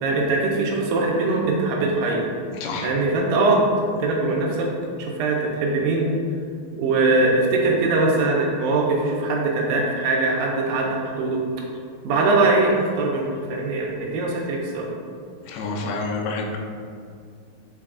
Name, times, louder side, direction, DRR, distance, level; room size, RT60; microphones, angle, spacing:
voice 1, 0.0-2.3 2.8-3.6 4.0-4.7 5.0-6.1 6.8-11.4 12.0-14.9, right 3 dB, 80° right, -2 dB, 2.2 m, -21 dB
voice 2, 15.5-16.6, left 3 dB, 90° left, 0 dB, 2.5 m, -28 dB
5.9 x 2.3 x 3.6 m, 2.3 s
omnidirectional pair, 4.3 m